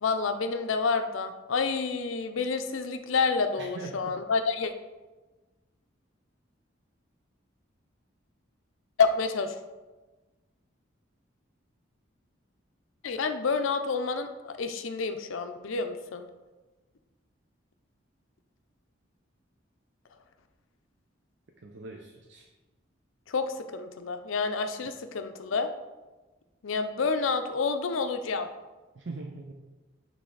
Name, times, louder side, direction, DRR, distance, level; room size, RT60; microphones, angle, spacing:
voice 1, 0.0-4.7 9.0-9.5 13.0-16.3 23.3-25.7 26.6-28.5, left 4 dB, 85° left, 8 dB, 0.5 m, -29 dB
voice 2, 3.6-4.2 21.6-22.5 24.8-24.9 28.9-29.5, right 3 dB, 65° right, 2 dB, 0.6 m, -41 dB
9.5 x 3.3 x 3.9 m, 1.2 s
head